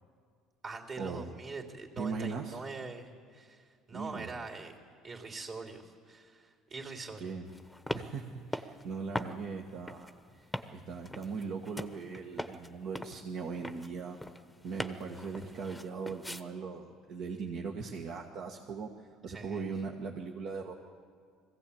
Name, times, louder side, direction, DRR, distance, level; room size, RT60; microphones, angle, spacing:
voice 1, 0.6-4.8 5.0-7.3 19.3-19.7, right 3 dB, 40° right, 3 dB, 3.2 m, -43 dB
voice 2, 2.0-2.6 3.9-4.3 7.2-7.5 7.9-10.5 10.7-14.2 14.6-20.7, right 5 dB, 60° right, 1 dB, 1.4 m, -39 dB
sound 1, 7.5-16.4, left 1 dB, 5° left, 1.0 m, -42 dB
21.0 x 15.5 x 8.6 m, 2.1 s
supercardioid pair, 105°, 0 cm